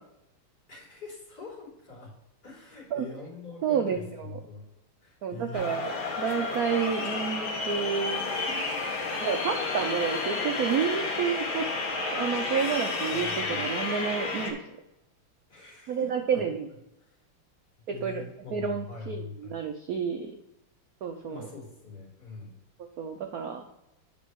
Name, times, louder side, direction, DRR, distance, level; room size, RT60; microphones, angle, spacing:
voice 1, 0.7-2.1 2.4-4.6 5.0-5.7 13.1-13.7 15.5-16.5 17.0-17.1 17.9-19.6 21.3-22.5, left 3 dB, 45° left, -6 dB, 3.7 m, -43 dB
voice 2, 3.6-4.4 5.2-8.6 9.2-11.6 12.1-14.6 15.9-16.7 17.9-18.2 18.5-20.3 21.0-21.5 23.0-23.6, right 7 dB, 80° right, 5 dB, 0.8 m, -30 dB
sound 1, 5.5-14.5, left 3 dB, 70° left, 2.2 m, -31 dB
8.5 x 5.2 x 4.6 m, 0.91 s
omnidirectional pair, 2.4 m